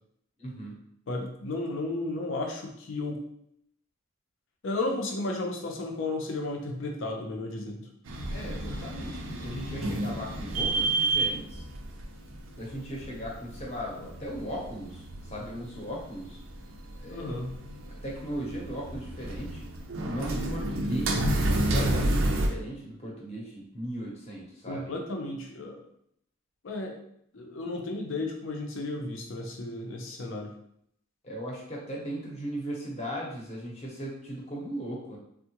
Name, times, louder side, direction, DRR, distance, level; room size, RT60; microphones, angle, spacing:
voice 1, 0.4-0.7 8.3-11.6 12.6-16.4 17.0-17.4 17.8-19.7 20.0-24.9 31.2-35.2, equal, 30° left, -3 dB, 0.8 m, -37 dB
voice 2, 1.1-3.2 4.6-7.9 17.1-17.5 24.7-25.8 26.6-26.9 27.3-30.5, left 2 dB, 65° left, 2 dB, 0.5 m, -33 dB
sound 1, 8.1-22.5, right 1 dB, 70° right, 0.5 m, -31 dB
3.5 x 2.1 x 2.8 m, 0.71 s
head